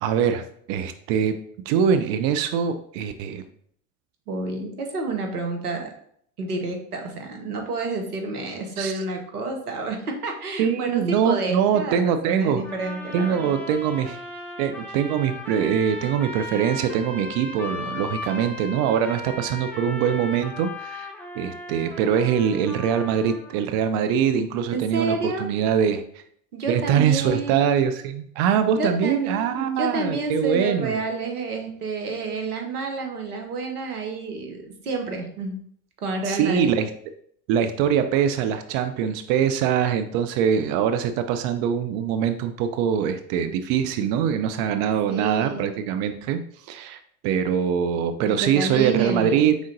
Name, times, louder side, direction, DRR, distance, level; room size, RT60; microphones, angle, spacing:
voice 1, 0.0-3.4 8.8-9.0 10.6-12.6 13.1-14.2 14.6-21.1 21.4-26.2 26.7-31.0 36.2-36.9 37.5-49.5, right 8 dB, 55° right, 9 dB, 0.5 m, -23 dB
voice 2, 4.3-5.9 6.4-13.5 24.7-25.5 26.5-27.9 28.8-35.6 36.0-36.7 45.1-45.8 48.3-49.6, right 3 dB, 90° right, 3 dB, 0.8 m, -29 dB
sound 1, 12.6-23.6, left 2 dB, 5° left, 0.8 m, -37 dB
4.9 x 3.7 x 2.6 m, 0.64 s
hypercardioid pair, 70°, 44 cm